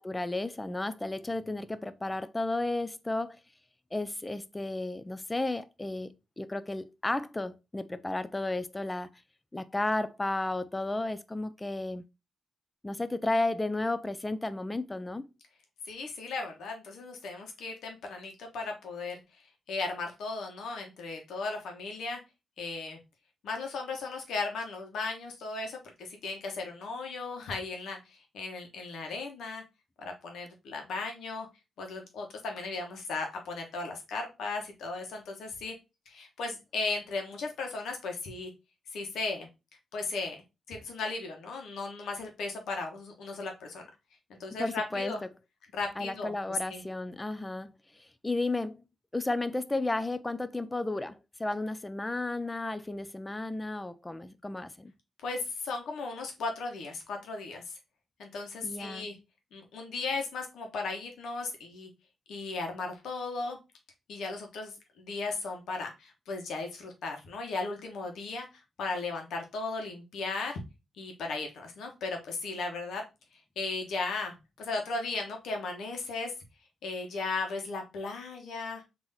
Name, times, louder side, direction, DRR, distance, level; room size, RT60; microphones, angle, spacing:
voice 1, 0.0-3.4 3.9-9.1 9.5-12.0 12.8-15.3 44.6-45.1 46.0-47.7 48.0-48.8 49.1-54.9 58.6-59.1, left 2 dB, 20° left, 0.4 m, -33 dB
voice 2, 15.9-19.2 19.7-22.2 22.6-23.0 23.4-29.6 30.0-31.5 31.8-35.8 36.1-38.5 38.9-39.5 39.9-40.4 40.7-43.8 44.3-45.2 45.7-46.8 55.2-57.7 58.2-59.2 59.5-61.9 62.3-63.6 64.1-68.5 68.8-70.6 71.0-73.0 73.6-76.3 76.8-78.8, left 3 dB, 80° left, 1.2 m, -36 dB
3.7 x 2.9 x 4.0 m
cardioid pair, 60°, 0 cm